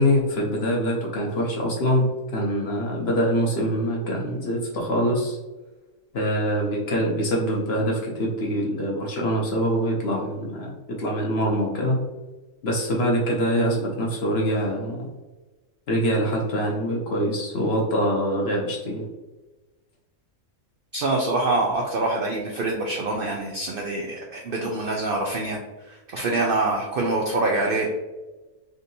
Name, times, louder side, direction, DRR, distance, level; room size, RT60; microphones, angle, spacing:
voice 1, 0.0-2.1 2.3-5.4 6.1-12.0 12.6-15.1 15.9-19.0, equal, 55° left, -1 dB, 0.8 m, -24 dB
voice 2, 20.9-25.6 26.1-27.9, right 2 dB, 75° right, 0 dB, 0.5 m, -25 dB
3.7 x 2.6 x 2.7 m, 1.1 s
omnidirectional pair, 1.5 m